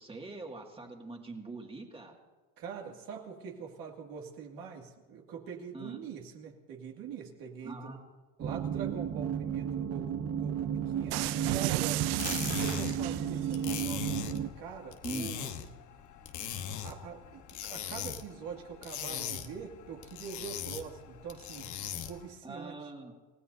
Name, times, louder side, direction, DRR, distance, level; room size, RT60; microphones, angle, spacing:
voice 1, 0.0-2.2 5.7-6.0 7.6-8.0 15.0-15.3 22.4-23.1, right 2 dB, 15° right, 1 dB, 2.2 m, -42 dB
voice 2, 2.6-7.8 8.4-12.0 12.3-14.0 14.6-15.5 16.8-22.8, right 7 dB, 60° right, 1 dB, 2.3 m, -44 dB
sound 1, 8.4-14.5, right 9 dB, 40° right, 1.0 m, -33 dB
sound 2, 11.1-13.6, right 20 dB, 80° right, 0.5 m, -34 dB
sound 3, 12.0-22.3, left 9 dB, 50° left, 1.2 m, -40 dB
29.0 x 16.0 x 2.7 m, 1.3 s
cardioid pair, 130°, 39 cm